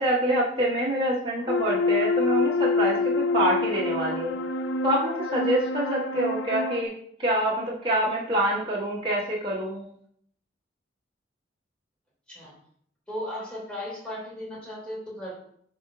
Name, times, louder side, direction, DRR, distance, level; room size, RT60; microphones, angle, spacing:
voice 1, 0.0-4.3 4.8-6.9 7.2-9.8, right 1 dB, 30° right, -7 dB, 1.5 m, -26 dB
sound 1, 1.5-6.8, left 3 dB, 90° left, 0.5 m, -26 dB
voice 2, 13.1-15.3, left 1 dB, 5° left, -6 dB, 2.6 m, -36 dB
11.5 x 4.5 x 2.4 m, 0.65 s
head